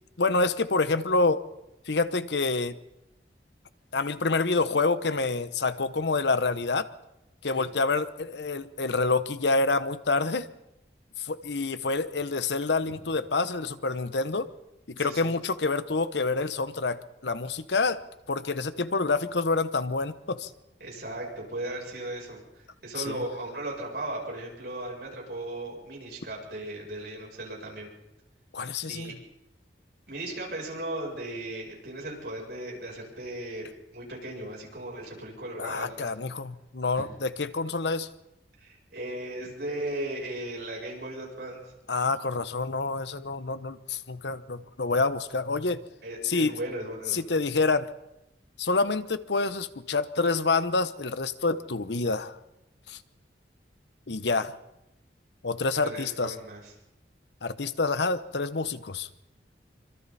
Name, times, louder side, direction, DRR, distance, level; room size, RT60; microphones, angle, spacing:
voice 1, 0.2-1.4 1.9-2.8 3.9-6.9 7.4-10.5 11.2-14.5 14.9-18.0 18.3-20.5 23.0-23.2 28.5-29.1 35.6-38.1 41.9-45.8 46.2-46.5 47.1-47.9 48.6-52.4 52.9-53.0 54.1-54.5 55.4-56.3 57.4-59.1, left 3 dB, 75° left, 13 dB, 1.0 m, -27 dB
voice 2, 15.0-15.3 20.8-27.9 28.9-29.2 30.1-33.7 33.9-36.1 36.9-37.0 38.6-41.7 46.0-47.2 55.8-56.7, right 1 dB, 65° right, -2 dB, 7.9 m, -37 dB
26.5 x 25.0 x 4.2 m, 0.90 s
head